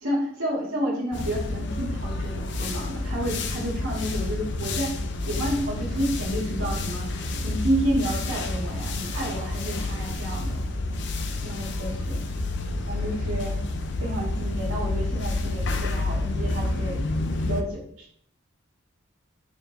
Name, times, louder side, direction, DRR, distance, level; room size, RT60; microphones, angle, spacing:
voice 1, 0.0-5.0 5.2-10.6 11.4-12.2 12.9-13.6 14.0-17.1 17.4-17.8, equal, 85° right, -5 dB, 2.2 m, -30 dB
sound 1, 1.1-17.6, left 2 dB, 60° left, 0.6 m, -29 dB
6.9 x 4.6 x 3.3 m, 0.63 s
head